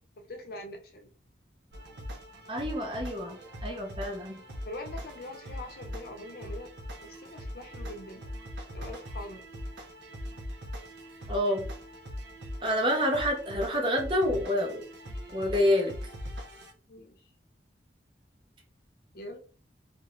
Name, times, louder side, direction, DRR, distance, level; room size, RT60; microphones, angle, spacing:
voice 1, 0.3-1.1 4.7-6.7 7.0-8.3 8.7-9.4 16.9-17.1 19.1-19.4, left 1 dB, 55° left, 0.6 m, -43 dB
sound 1, 1.7-16.7, equal, 70° right, 0.6 m, -41 dB
voice 2, 2.5-4.4 11.3-11.7 12.6-14.8 15.3-15.9, equal, 30° right, 0.6 m, -28 dB
2.5 x 2.0 x 2.9 m
head